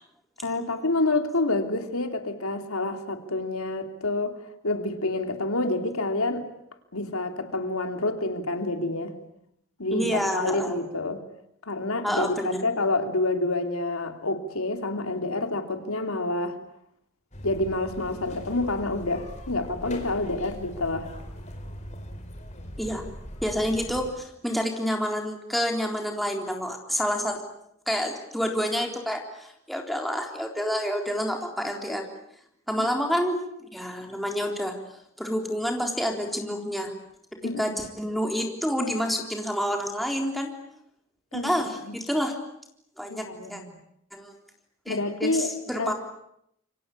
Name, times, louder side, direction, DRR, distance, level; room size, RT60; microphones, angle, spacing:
voice 1, 0.4-4.4 4.6-6.5 6.9-9.1 9.8-11.2 11.6-16.6 17.4-21.1 32.8-32.9 37.4-37.8 41.3-41.5 41.8-42.0 43.1-43.8 44.9-45.9, left 2 dB, 80° left, 6 dB, 3.0 m, -28 dB
voice 2, 9.9-10.7 12.0-12.6 22.8-23.0 23.4-27.4 27.9-32.1 32.7-34.8 35.2-36.9 37.3-40.5 41.3-42.3 43.0-43.6 44.1-44.3 44.9-45.9, equal, ahead, 2 dB, 3.7 m, -28 dB
sound 1, 17.3-24.1, equal, 30° left, 4.5 m, -40 dB
28.0 x 24.0 x 8.6 m, 0.76 s
head